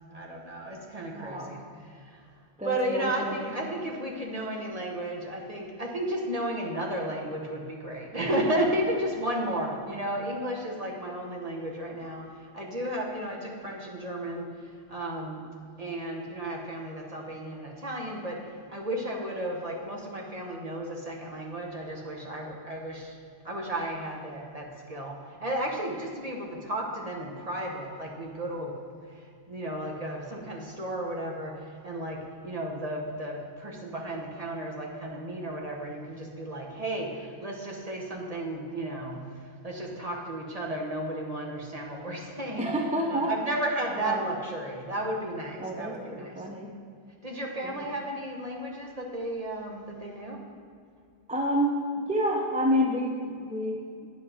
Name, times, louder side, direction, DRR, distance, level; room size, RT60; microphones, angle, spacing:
voice 1, 0.1-1.6 2.0-2.2 2.6-12.3 12.5-14.5 14.9-15.4 15.8-23.2 23.4-28.7 29.1-39.2 39.6-42.7 43.1-46.4 47.2-50.4, right 1 dB, 35° right, -1 dB, 1.4 m, -33 dB
voice 2, 1.1-1.6 2.6-3.5 42.6-43.3 44.0-44.2 45.6-46.7 47.6-47.8 51.3-54.1, equal, 5° right, 0 dB, 0.7 m, -29 dB
9.4 x 7.5 x 5.1 m, 2.3 s
omnidirectional pair, 1.2 m